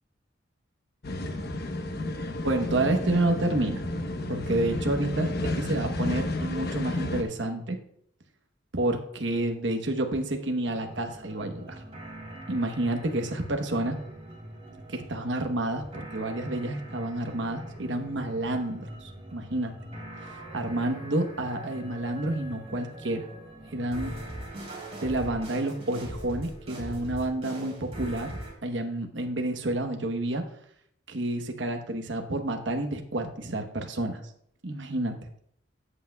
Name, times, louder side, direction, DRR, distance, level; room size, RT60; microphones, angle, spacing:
sound 1, 1.0-7.2, left 1 dB, 55° left, 1.0 m, -31 dB
voice 1, 2.4-3.8 4.3-7.8 8.7-11.8 12.5-14.0 14.9-19.7 20.2-23.2 23.7-24.1 25.0-30.4 31.1-34.2 34.6-35.2, right 1 dB, 70° right, 4 dB, 1.1 m, -29 dB
sound 2, 10.7-28.5, right 1 dB, 35° right, 3.5 m, -42 dB
13.0 x 8.3 x 2.3 m, 0.69 s
head